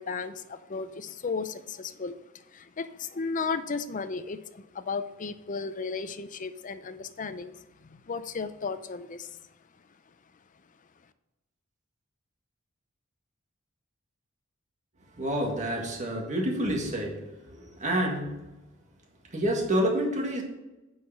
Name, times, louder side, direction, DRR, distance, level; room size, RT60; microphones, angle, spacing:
voice 1, 0.0-9.4, left 4 dB, 40° left, 12 dB, 0.5 m, -35 dB
voice 2, 15.2-18.4 19.3-20.4, equal, 35° right, 0 dB, 1.9 m, -28 dB
9.4 x 4.8 x 5.7 m, 1.0 s
head